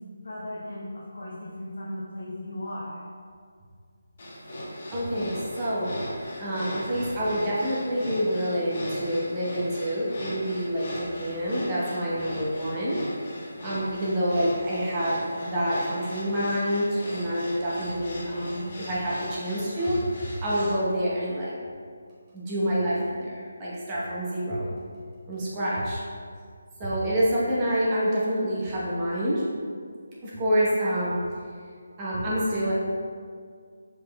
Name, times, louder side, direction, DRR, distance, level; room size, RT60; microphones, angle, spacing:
voice 1, 0.2-3.0, left 1 dB, 85° left, -6 dB, 0.7 m, -36 dB
sound 1, 4.2-20.8, equal, 45° left, 1.1 m, -38 dB
voice 2, 4.9-5.9 6.4-13.0 13.6-21.5 22.3-24.7 25.3-26.0 26.8-29.4 30.2-31.2 32.0-32.7, equal, 20° right, -7 dB, 0.9 m, -27 dB
5.2 x 4.0 x 2.2 m, 2.1 s
figure-of-eight pair, 170°, 0 cm